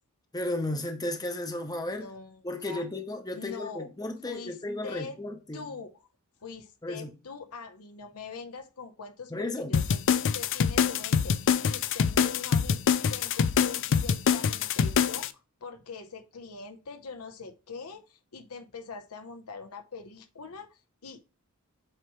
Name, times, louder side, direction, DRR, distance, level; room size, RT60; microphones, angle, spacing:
voice 1, 0.3-2.1 2.4-5.7 6.8-7.1 9.3-9.8, left 1 dB, 15° left, 0.8 m, -34 dB
voice 2, 1.9-2.8 3.3-3.9 4.2-4.6 4.8-5.2 5.5-6.0 6.4-12.8 13.1-21.2, left 4 dB, 75° left, 0.8 m, -43 dB
sound 1, 9.7-15.3, left 7 dB, 60° left, 0.4 m, -25 dB
7.6 x 3.1 x 4.6 m
head